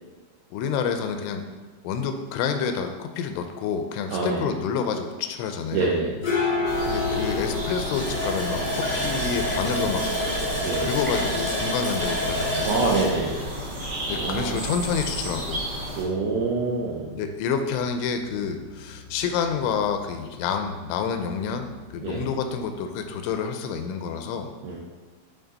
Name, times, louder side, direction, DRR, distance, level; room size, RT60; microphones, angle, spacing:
voice 1, 0.5-1.5 1.8-5.9 6.8-10.1 10.8-12.8 14.1-15.6 17.1-21.7 21.9-24.5, left 6 dB, 85° left, 6 dB, 3.0 m, -28 dB
voice 2, 4.1-4.4 5.7-6.1 10.6-10.9 12.6-13.4 14.1-14.7 15.7-17.1 22.0-22.3 24.6-24.8, right 4 dB, 80° right, -4 dB, 2.2 m, -26 dB
sound 1, 5.8-23.3, left 3 dB, 55° left, 1.1 m, -35 dB
sound 2, 6.6-16.0, equal, 60° right, 1.4 m, -33 dB
Water tap faucet, 7.9-14.4 14.8-14.9 15.3-15.5, equal, 30° left, 0.6 m, -29 dB
10.0 x 4.1 x 4.0 m, 1.3 s
omnidirectional pair, 5.5 m